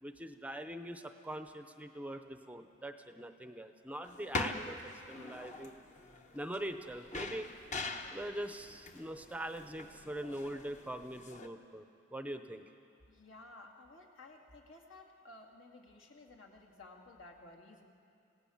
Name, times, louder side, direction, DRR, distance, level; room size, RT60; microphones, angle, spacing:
voice 1, 0.0-5.7 6.3-7.5 8.1-11.8 12.1-12.7, right 1 dB, 5° right, 8 dB, 0.7 m, -43 dB
sound 1, 4.0-11.5, left 2 dB, 35° left, 1.1 m, -43 dB
voice 2, 13.1-17.9, left 2 dB, 70° left, 1 dB, 2.5 m, -55 dB
27.5 x 17.0 x 7.2 m, 2.5 s
head